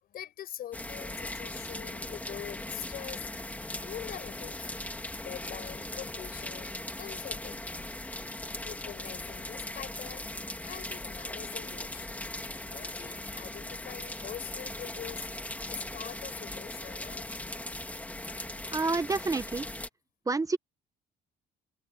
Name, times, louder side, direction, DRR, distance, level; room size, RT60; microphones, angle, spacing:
voice 1, 0.0-3.2 3.8-4.8 5.2-7.9 8.6-12.2 12.6-15.2 15.7-17.3, left 11 dB, 60° left, 5.1 m, -44 dB
sound 1, 0.7-19.9, left 1 dB, 10° left, 2.9 m, -39 dB
voice 2, 18.7-19.7 20.3-20.6, right 3 dB, 20° right, 1.1 m, -28 dB
cardioid pair, 110°, 17 cm